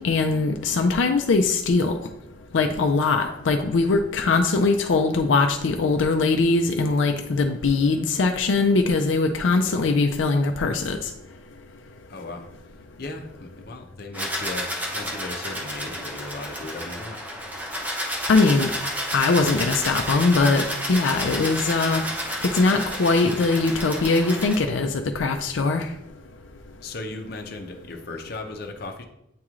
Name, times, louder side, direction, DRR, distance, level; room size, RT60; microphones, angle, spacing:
voice 1, 0.0-2.0 2.5-11.1 18.3-18.7 19.1-22.1 22.4-25.9, left 3 dB, 85° left, 5 dB, 0.4 m, -21 dB
voice 2, 12.1-17.2 26.8-29.0, left 2 dB, 55° left, 3 dB, 0.7 m, -37 dB
sound 1, 14.1-24.6, equal, 10° right, 0.8 m, -31 dB
8.4 x 3.1 x 3.6 m, 0.81 s
head